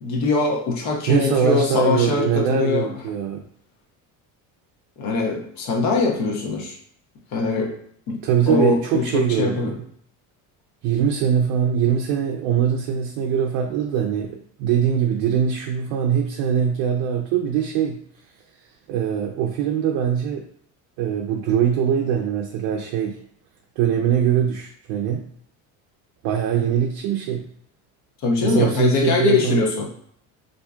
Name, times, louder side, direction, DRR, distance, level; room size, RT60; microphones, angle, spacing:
voice 1, 0.0-2.9 5.0-6.8 7.3-7.7 8.1-8.2 8.5-9.8 28.2-29.9, left 4 dB, 50° left, 0 dB, 0.8 m, -22 dB
voice 2, 1.1-3.4 8.2-9.8 10.8-18.0 18.9-20.4 21.0-23.2 23.8-25.2 26.2-27.4 28.4-29.6, right 8 dB, 70° right, 1 dB, 0.5 m, -22 dB
4.4 x 2.6 x 2.3 m, 0.63 s
cardioid pair, 170°, 37 cm